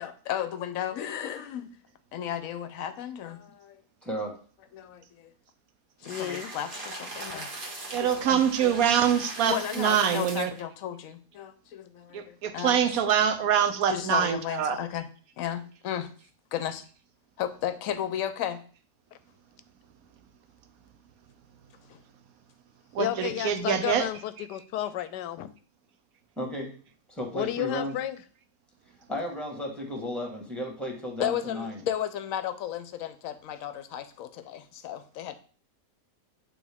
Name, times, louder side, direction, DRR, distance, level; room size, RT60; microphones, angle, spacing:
voice 1, 0.0-1.7 2.1-3.8 4.7-5.3 6.0-8.8 9.5-13.2 13.9-15.1 15.4-16.1 16.5-16.8 17.4-18.6 21.9-22.0 31.2-35.3, left 10 dB, 65° left, 10 dB, 1.0 m, -34 dB
voice 2, 4.0-4.4 26.4-26.8 27.1-27.9 29.1-31.8, equal, ahead, 1 dB, 1.4 m, -34 dB
sound 1, 6.0-10.6, right 2 dB, 35° right, 1.3 m, -40 dB
voice 3, 6.1-6.5 23.0-25.5 27.3-28.2, left 12 dB, 90° left, 13 dB, 1.2 m, -32 dB
voice 4, 7.9-10.5 12.1-14.8 22.9-24.1 24.4-24.5, right 8 dB, 65° right, 9 dB, 1.1 m, -25 dB
8.6 x 3.8 x 3.5 m, 0.41 s
omnidirectional pair, 1.8 m